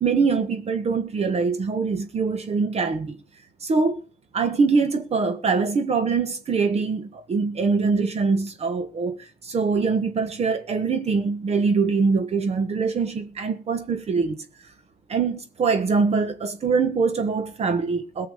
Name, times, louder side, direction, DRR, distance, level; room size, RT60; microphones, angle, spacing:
voice 1, 0.0-3.2 3.6-4.0 4.3-14.4 15.1-18.3, right 4 dB, 40° right, 1.4 m, -23 dB
17.5 x 7.0 x 6.8 m
cardioid pair, 110°, 17 cm